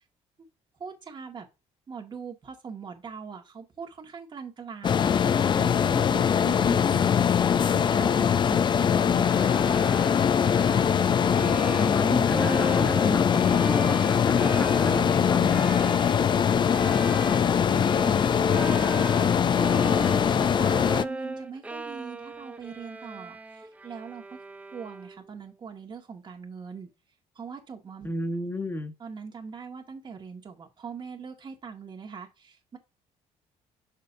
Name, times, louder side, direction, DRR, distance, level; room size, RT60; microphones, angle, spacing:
voice 1, 0.8-1.5 1.9-7.1 7.7-9.3 16.5-18.8 19.3-24.4 24.7-26.9 27.4-28.1 29.0-32.8, right 5 dB, 35° right, 2.0 m, -42 dB
sound 1, 4.8-21.1, left 7 dB, 40° left, 0.5 m, -22 dB
Bowed string instrument, 9.2-25.3, right 2 dB, 10° right, 0.5 m, -37 dB
voice 2, 11.3-15.7 28.0-28.9, left 2 dB, 15° left, 1.2 m, -33 dB
6.7 x 6.5 x 2.7 m
cardioid pair, 110°, 13 cm